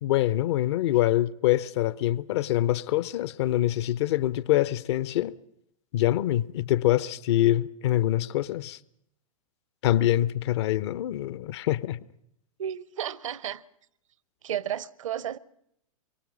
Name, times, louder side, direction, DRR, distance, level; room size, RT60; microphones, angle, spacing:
voice 1, 0.0-5.3 5.9-8.8 9.8-12.0, left 14 dB, 50° left, 0.8 m, -25 dB
voice 2, 12.6-13.6 14.4-15.4, right 10 dB, 65° right, 0.8 m, -32 dB
25.0 x 23.5 x 6.2 m
figure-of-eight pair, 100°, 18 cm